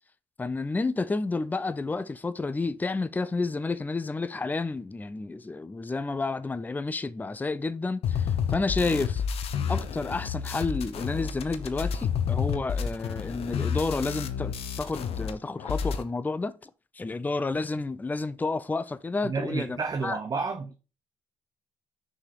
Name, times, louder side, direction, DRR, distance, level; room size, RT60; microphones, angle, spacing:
voice 1, 0.4-9.2 9.7-16.7 16.9-19.7 20.0-20.2, left 3 dB, 15° left, 0.5 m, -30 dB
sound 1, 8.0-15.3 15.6-16.0, left 7 dB, 70° left, 0.8 m, -30 dB
voice 2, 19.2-20.8, right 4 dB, 35° right, 0.7 m, -31 dB
5.9 x 4.2 x 4.5 m
supercardioid pair, 65°, 11 cm